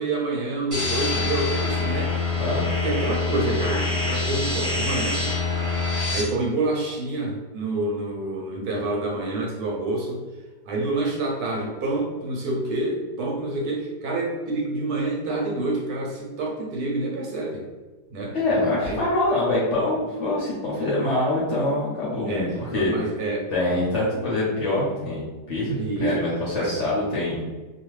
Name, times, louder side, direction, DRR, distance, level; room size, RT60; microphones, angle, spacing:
voice 1, 0.0-5.3 6.1-10.2 10.6-17.7 18.1-18.4 18.8-19.0 20.8-20.9 22.3-23.5 25.8-26.2 26.6-26.8, right 2 dB, 70° right, -1 dB, 1.1 m, -28 dB
sound 1, 0.7-6.2, left 3 dB, 30° right, 0.6 m, -25 dB
voice 2, 18.3-22.9 23.5-27.4, left 2 dB, 55° left, -6 dB, 0.9 m, -24 dB
2.7 x 2.4 x 3.1 m, 1.2 s
omnidirectional pair, 1.8 m